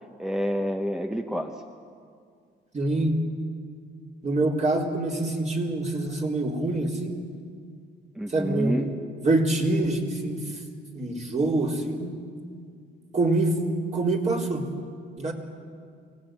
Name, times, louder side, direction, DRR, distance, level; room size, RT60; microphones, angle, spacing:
voice 1, 0.2-1.6 8.1-8.9, equal, ahead, 5 dB, 1.2 m, -28 dB
voice 2, 2.7-3.2 4.2-7.2 8.3-8.9 9.2-10.4 10.9-12.2 13.1-13.6 13.9-14.6 15.2-15.3, right 2 dB, 35° right, 0 dB, 4.0 m, -25 dB
23.5 x 18.0 x 9.2 m, 2.2 s
cardioid pair, 90°, 20 cm